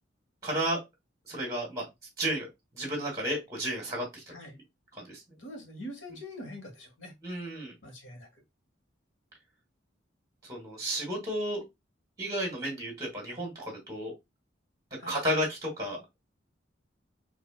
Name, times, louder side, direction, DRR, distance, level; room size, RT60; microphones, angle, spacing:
voice 1, 0.4-0.8 1.3-1.9 2.2-2.5 2.7-4.3 5.0-5.2 7.2-7.7 10.4-11.6 12.2-14.1 15.1-16.0, right 1 dB, 20° right, 1.2 m, -32 dB
voice 2, 5.4-7.1 7.8-8.3 15.0-15.2, left 1 dB, 75° left, 1.3 m, -44 dB
4.1 x 2.6 x 2.3 m
head